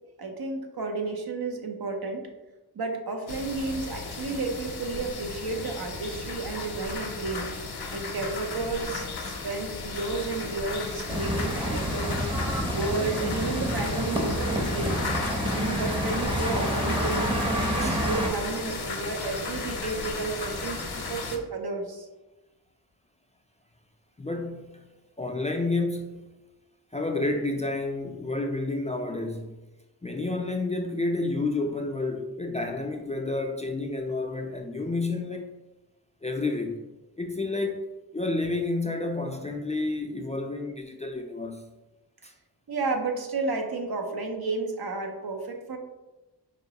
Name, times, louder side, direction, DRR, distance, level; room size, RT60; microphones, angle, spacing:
voice 1, 0.2-2.2 2.7-7.5 7.9-12.3 12.7-15.0 15.5-22.1 42.7-45.8, right 3 dB, 65° right, 0.7 m, -32 dB
sound 1, 3.3-21.4, left 4 dB, 65° left, 0.7 m, -35 dB
sound 2, 11.1-18.3, equal, 10° right, 0.7 m, -28 dB
voice 2, 24.2-24.9 25.2-26.3 26.9-29.5 30.0-35.5 36.2-36.8 37.2-37.9 38.1-41.6 42.2-42.3, left 2 dB, 20° left, 0.3 m, -30 dB
4.4 x 3.0 x 2.8 m
wide cardioid pair, 60°, 41 cm